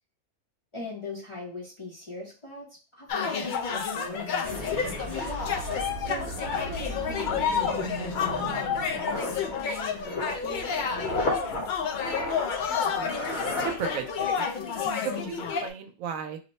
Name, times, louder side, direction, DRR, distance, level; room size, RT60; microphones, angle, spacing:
voice 1, 0.7-5.5 6.0-10.8 14.8-15.4, left 2 dB, 30° left, -4 dB, 0.7 m, -40 dB
sound 1, 3.1-15.7, left 6 dB, 75° left, 0.4 m, -30 dB
sound 2, 4.4-9.6, right 2 dB, 30° right, 1.0 m, -38 dB
sound 3, 5.3-14.4 14.6-14.9, left 1 dB, 55° left, 1.1 m, -36 dB
voice 2, 11.8-12.4 12.7-12.8 13.6-14.4 15.2-16.4, right 8 dB, 85° right, 7 dB, 1.0 m, -36 dB
2.8 x 2.1 x 4.1 m, 0.34 s
omnidirectional pair, 1.4 m